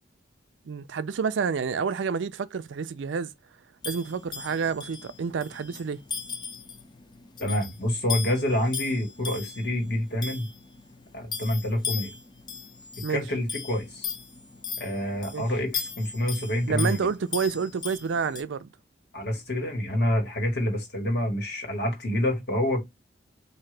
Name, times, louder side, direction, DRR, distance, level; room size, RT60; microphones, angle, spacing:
voice 1, 0.7-3.3 3.9-6.0 13.0-13.2 15.3-15.5 16.7-18.7, right 5 dB, 90° right, 0.4 m, -29 dB
sound 1, 3.8-18.4, left 6 dB, 25° left, 0.4 m, -38 dB
voice 2, 7.4-10.5 11.1-12.1 13.1-14.1 14.8-17.1 19.1-22.9, left 1 dB, 60° left, 1.5 m, -27 dB
3.8 x 2.7 x 3.2 m
head